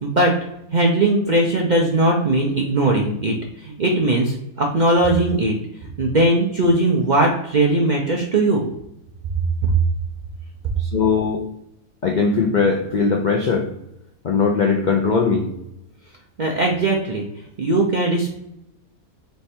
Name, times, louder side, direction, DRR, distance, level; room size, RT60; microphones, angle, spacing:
voice 1, 0.0-0.4 0.7-5.6 6.0-8.6 9.6-9.7 16.4-17.3 17.6-18.4, right 2 dB, 55° right, -1 dB, 0.5 m, -19 dB
voice 2, 10.8-11.4 12.0-13.7 14.2-15.5, left 5 dB, 85° left, 1 dB, 0.4 m, -19 dB
3.3 x 3.3 x 4.3 m, 0.81 s
omnidirectional pair, 1.5 m